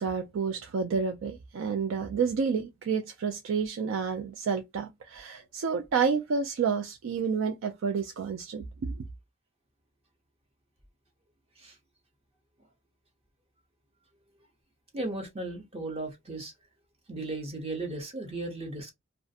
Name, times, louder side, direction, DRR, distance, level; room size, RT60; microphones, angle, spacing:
voice 1, 0.0-9.1, right 5 dB, 65° right, 0.3 m, -30 dB
voice 2, 14.9-16.5 17.1-18.9, right 2 dB, 30° right, 0.7 m, -36 dB
2.4 x 2.1 x 2.6 m
head